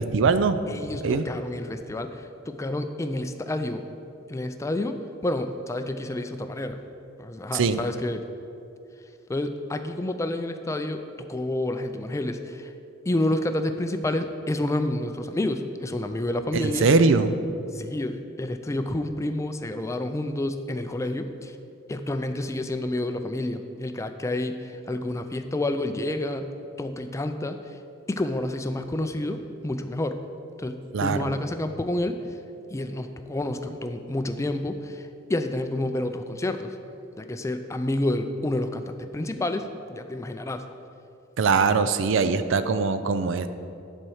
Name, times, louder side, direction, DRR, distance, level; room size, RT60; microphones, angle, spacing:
voice 1, 0.0-0.6 1.0-1.2 7.5-7.8 16.5-17.3 30.9-31.3 41.4-43.5, right 4 dB, 65° right, 12 dB, 0.4 m, -22 dB
voice 2, 0.7-3.9 4.3-6.8 7.2-8.3 9.3-12.7 13.1-16.9 17.7-21.6 21.9-26.5 26.8-27.6 28.1-30.2 30.6-32.2 32.7-36.8 37.2-40.7, left 1 dB, 15° left, 8 dB, 0.4 m, -29 dB
11.0 x 4.4 x 6.3 m, 2.7 s
head